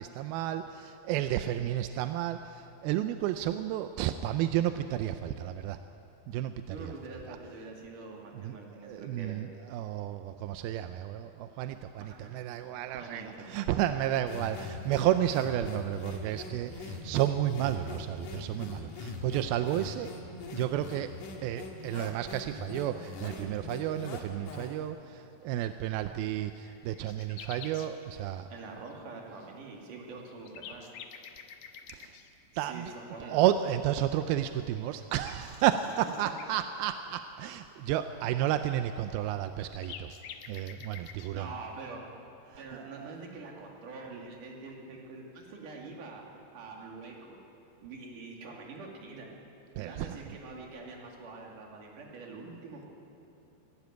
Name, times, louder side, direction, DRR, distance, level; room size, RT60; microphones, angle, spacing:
voice 1, 0.0-5.8 6.3-6.9 7.3-7.4 8.4-8.6 8.8-20.1 20.5-21.1 21.4-28.5 31.9-32.2 32.6-32.9 33.3-40.1 40.5-41.5 42.5-43.2 49.8-50.2, right 12 dB, 80° right, 9 dB, 2.2 m, -32 dB
voice 2, 6.7-9.4 12.0-12.6 12.9-13.5 28.5-30.9 32.5-33.4 36.0-36.1 41.3-42.0 42.6-46.2 46.5-47.4 47.8-49.3 49.8-52.9, right 3 dB, 55° right, -1 dB, 3.9 m, -45 dB
sound 1, 14.3-24.9, left 3 dB, 55° left, 3.0 m, -42 dB
sound 2, 25.7-25.8 26.2-26.3 26.5-27.9 29.8-29.9 30.3-32.3 34.4-34.5 34.8-36.7 39.2-39.3 39.4-41.3, left 8 dB, 70° left, 2.0 m, -48 dB
26.5 x 12.0 x 9.4 m, 2.9 s
omnidirectional pair, 4.9 m